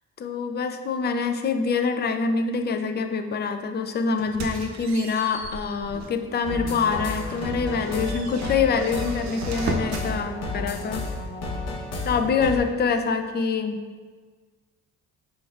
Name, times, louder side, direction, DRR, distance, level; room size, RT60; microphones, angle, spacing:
voice 1, 0.2-11.0 12.0-13.8, left 5 dB, 35° left, 7 dB, 0.4 m, -25 dB
sound 1, 4.2-6.3 6.7-6.9 7.3-10.1, right 3 dB, 65° right, 0.6 m, -35 dB
sound 2, 6.4-12.6, left 2 dB, 60° left, 0.8 m, -32 dB
4.6 x 4.1 x 2.4 m, 1.5 s
cardioid pair, 90°, 30 cm